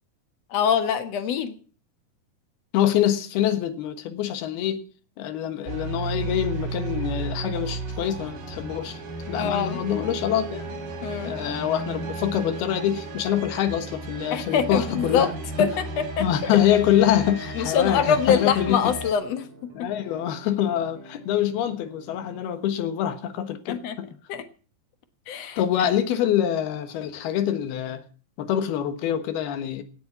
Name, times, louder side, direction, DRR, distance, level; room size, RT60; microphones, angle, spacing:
voice 1, 0.5-1.5 9.3-9.8 11.0-11.3 14.3-15.3 15.6-15.8 16.2-16.6 17.6-19.5 23.7-24.0 24.3-24.4 25.3-25.9, left 7 dB, 60° left, 1.9 m, -24 dB
voice 2, 2.7-4.8 5.2-9.0 9.3-10.6 11.2-15.3 15.6-15.7 16.2-18.9 19.7-24.1 25.6-28.0 28.4-29.8, left 11 dB, 85° left, 3.4 m, -25 dB
sound 1, 5.7-19.1, right 2 dB, 75° right, 5.1 m, -34 dB
sound 2, 8.0-22.4, right 3 dB, 45° right, 3.8 m, -48 dB
17.5 x 7.8 x 7.1 m
omnidirectional pair, 4.4 m